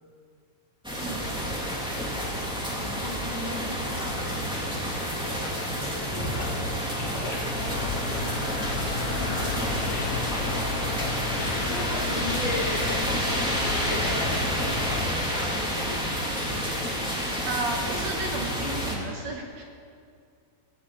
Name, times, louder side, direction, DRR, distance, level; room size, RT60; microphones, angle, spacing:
sound 1, 0.8-19.0, equal, ahead, 1.2 m, -29 dB
voice 1, 2.7-6.7 9.0-10.5 11.4-13.1 13.6-17.5, left 2 dB, 55° left, -3 dB, 3.5 m, -38 dB
sound 2, 6.1-11.6, left 1 dB, 35° left, 2.0 m, -36 dB
sound 3, 7.6-15.1, left 3 dB, 85° left, 4.4 m, -33 dB
voice 2, 8.0-8.5 17.4-19.6, right 3 dB, 60° right, 1 dB, 1.9 m, -34 dB
17.0 x 7.3 x 8.8 m, 2.3 s
omnidirectional pair, 4.6 m